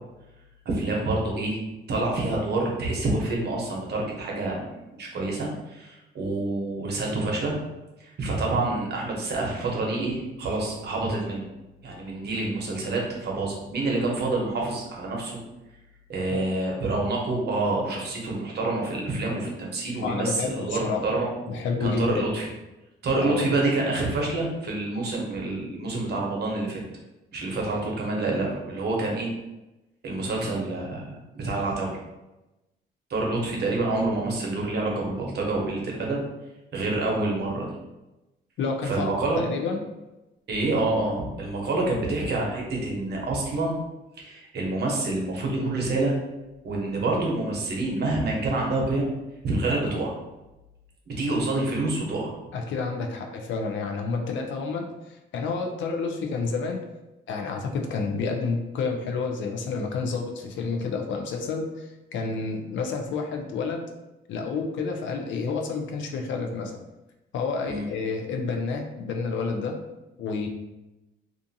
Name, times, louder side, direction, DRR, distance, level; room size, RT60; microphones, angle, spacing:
voice 1, 0.6-1.6 1.9-7.6 8.0-11.5 11.8-15.4 16.1-21.3 21.8-22.5 23.0-26.8 27.3-29.3 30.0-32.0 33.1-36.2 36.7-37.8 38.9-39.4 40.5-43.8 44.2-46.2 46.6-49.1 49.4-50.1 51.1-52.3 67.7-67.8, right 2 dB, 55° right, -1 dB, 0.8 m, -27 dB
voice 2, 20.0-21.0 21.5-22.2 23.2-23.6 38.6-39.8 52.5-56.9 57.3-63.9 64.3-66.8 67.3-69.8 70.2-70.5, left 4 dB, 70° left, 3 dB, 0.5 m, -29 dB
2.5 x 2.4 x 2.6 m, 1.0 s
cardioid pair, 90°, 20 cm